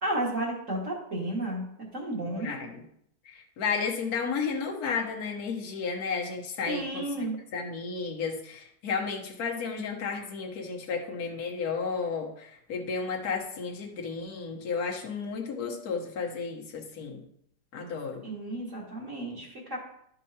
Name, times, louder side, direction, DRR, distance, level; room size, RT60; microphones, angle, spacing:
voice 1, 0.0-1.7 1.9-2.6 6.7-7.4 18.2-19.8, right 1 dB, 40° right, -4 dB, 2.3 m, -32 dB
voice 2, 2.4-2.8 3.2-7.2 7.5-17.2 17.7-18.3, left 5 dB, 55° left, 1 dB, 1.5 m, -33 dB
12.0 x 5.6 x 2.9 m, 0.73 s
omnidirectional pair, 2.1 m